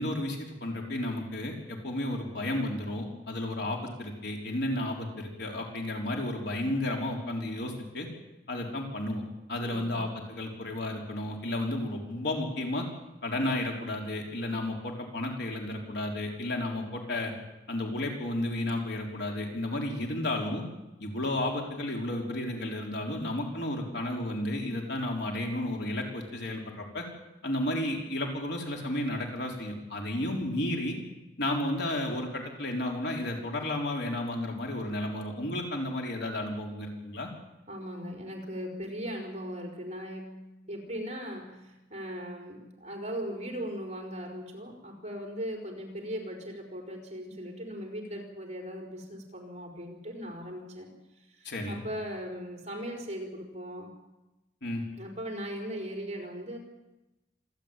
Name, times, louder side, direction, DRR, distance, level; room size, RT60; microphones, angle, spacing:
voice 1, 0.0-8.1 8.5-9.2 9.5-12.9 13.2-17.3 17.7-20.6 21.0-27.1 27.4-31.0 31.4-37.3 51.4-51.8 54.6-54.9, left 1 dB, 65° left, 1 dB, 4.0 m, -32 dB
voice 2, 9.5-10.1 37.7-50.9 51.3-53.9 55.0-56.6, equal, 40° right, 1 dB, 5.0 m, -39 dB
26.5 x 12.5 x 9.1 m, 1.0 s
head